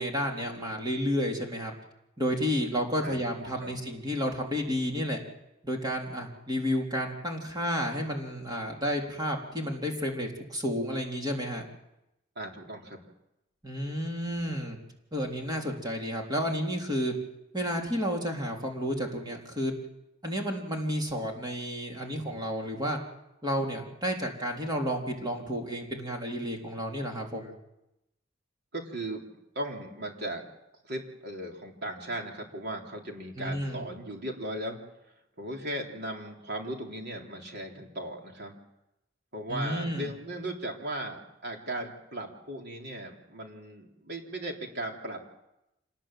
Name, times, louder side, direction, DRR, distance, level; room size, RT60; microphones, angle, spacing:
voice 1, 0.0-1.7 2.2-5.2 5.6-11.6 13.6-14.8 15.1-17.1 17.5-19.7 20.2-23.0 23.4-27.5 33.4-33.8 39.5-40.1, equal, 20° right, 0 dB, 3.7 m, -31 dB
voice 2, 12.4-13.0 22.0-22.5 28.7-29.3 29.6-30.4 30.8-34.8 35.4-38.5 39.3-45.2, right 1 dB, 55° right, 1 dB, 3.7 m, -37 dB
26.5 x 19.5 x 7.6 m, 0.89 s
head